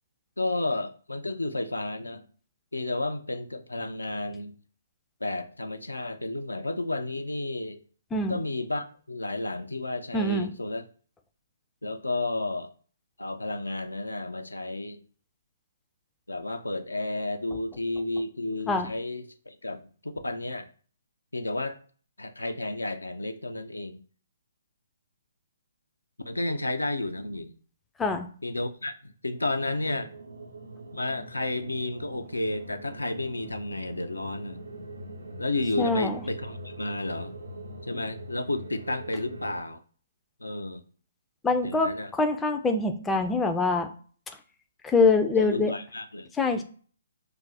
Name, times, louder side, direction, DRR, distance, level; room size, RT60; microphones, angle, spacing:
voice 1, 0.4-2.2 2.7-4.6 5.2-7.8 8.3-10.8 11.8-12.7 13.2-15.0 16.3-20.7 21.3-21.8 22.2-24.0 26.3-27.5 28.4-30.1 30.9-34.6 35.4-37.3 37.9-39.8 40.4-40.8 41.6-42.1 45.4-46.3, left 2 dB, 90° left, 8 dB, 0.4 m, -32 dB
voice 2, 10.1-10.5 18.7-18.9 28.0-28.3 35.8-36.2 41.4-43.9 44.8-45.7 46.4-46.6, left 3 dB, 10° left, 6 dB, 0.3 m, -24 dB
sound 1, 29.3-39.6, right 1 dB, 85° right, 0.6 m, -43 dB
2.4 x 2.0 x 3.9 m, 0.43 s
figure-of-eight pair, 135°, 0 cm